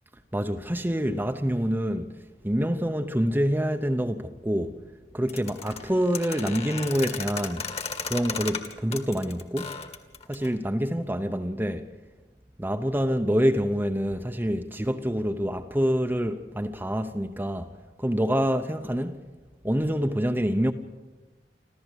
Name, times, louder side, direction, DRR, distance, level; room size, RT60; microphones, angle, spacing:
voice 1, 0.3-4.8 5.1-7.7 8.1-9.8 10.3-11.9 12.6-17.7 18.0-19.2 19.6-20.7, equal, 10° right, 0.8 m, -26 dB
sound 1, 5.3-10.5, left 5 dB, 35° left, 1.9 m, -35 dB
26.0 x 15.0 x 8.1 m
head